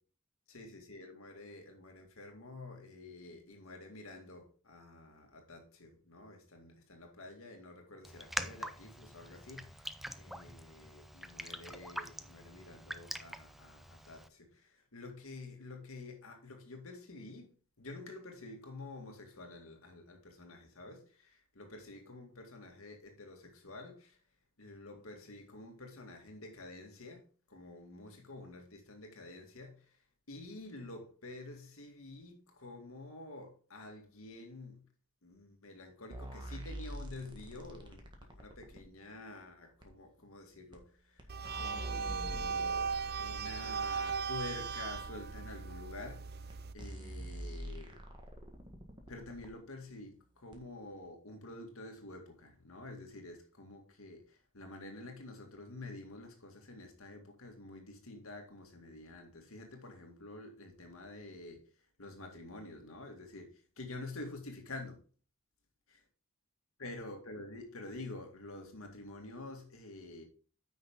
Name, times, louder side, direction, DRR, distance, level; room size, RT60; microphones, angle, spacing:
voice 1, 0.5-24.2 24.6-27.2 27.5-30.0 30.3-34.9 35.2-41.3 41.5-48.0 49.1-61.6 62.0-65.0 66.8-70.2, left 2 dB, 80° left, 2.1 m, -49 dB
Raindrop, 8.0-14.3, equal, ahead, 0.5 m, -44 dB
sound 1, 36.1-38.8 39.8-39.9 40.7-40.8 41.2-44.2 45.0-45.1 46.0-46.1 46.5-46.6 46.8-49.5 50.5-50.6, right 1 dB, 25° right, 1.7 m, -46 dB
sound 2, 41.3-46.7, right 5 dB, 50° right, 0.6 m, -38 dB
9.4 x 6.0 x 3.7 m
head